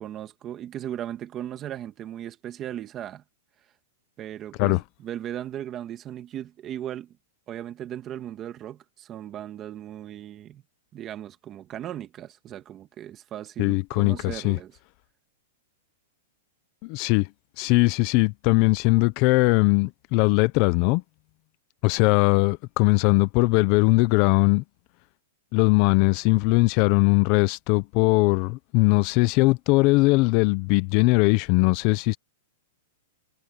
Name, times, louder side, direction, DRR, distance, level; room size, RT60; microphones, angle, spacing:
voice 1, 0.0-3.2 4.2-7.1 7.5-10.6 10.9-14.7, right 11 dB, 20° right, 1.7 m, -37 dB
voice 2, 13.6-14.6 16.8-17.3 17.6-21.0 21.8-24.6 25.5-32.2, left 24 dB, 35° left, 0.7 m, -20 dB
supercardioid pair, 165°, 0 cm